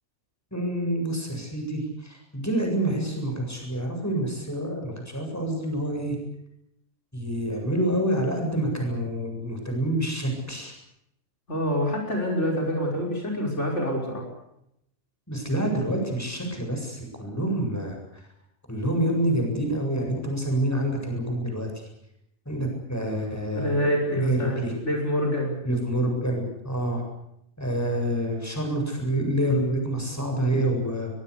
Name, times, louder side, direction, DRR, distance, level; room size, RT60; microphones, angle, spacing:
voice 1, 0.5-6.2 7.1-10.7 15.3-18.0 18.7-21.7 22.5-23.9 24.2-24.7 25.6-27.0 27.6-31.1, right 1 dB, 10° left, 2 dB, 7.7 m, -27 dB
voice 2, 11.5-14.2 23.5-25.6, equal, 55° left, 1 dB, 5.8 m, -26 dB
23.0 x 22.5 x 8.4 m, 0.78 s
omnidirectional pair, 1.4 m